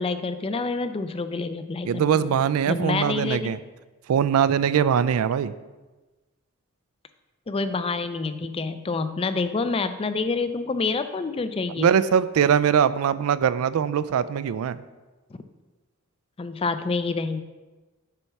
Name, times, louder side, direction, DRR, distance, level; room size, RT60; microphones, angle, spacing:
voice 1, 0.0-2.3 2.7-3.5 7.5-11.9 16.4-17.4, left 4 dB, 25° left, 10 dB, 0.4 m, -27 dB
voice 2, 1.8-3.6 4.1-5.5 11.8-14.8, right 8 dB, 75° right, 15 dB, 0.3 m, -22 dB
6.9 x 4.6 x 5.7 m, 1.2 s
head